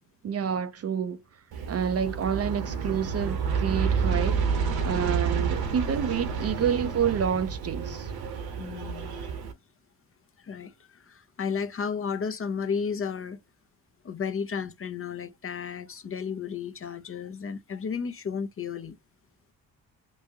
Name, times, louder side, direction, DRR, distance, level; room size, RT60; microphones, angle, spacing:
voice 1, 0.2-1.2 1.7-4.4 4.8-8.1, right 7 dB, 35° right, 0.6 m, -28 dB
Aircraft, 1.5-9.5, right 6 dB, 65° right, 1.2 m, -29 dB
voice 2, 8.6-9.2 10.4-13.4 14.0-19.0, left 6 dB, 35° left, 0.7 m, -33 dB
3.0 x 2.5 x 3.5 m
hypercardioid pair, 50°, 41 cm